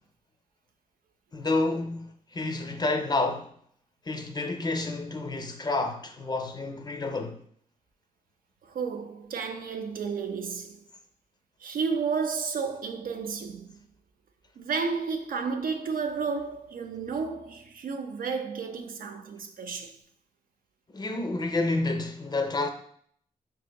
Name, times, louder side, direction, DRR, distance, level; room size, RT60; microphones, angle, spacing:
voice 1, 1.3-3.5 4.1-7.4 20.9-22.7, left 2 dB, 25° left, 0.4 m, -29 dB
voice 2, 8.6-10.8 11.6-13.8 14.6-20.0, right 5 dB, 70° right, 0.5 m, -32 dB
4.8 x 2.8 x 2.2 m
wide cardioid pair, 110°, 15 cm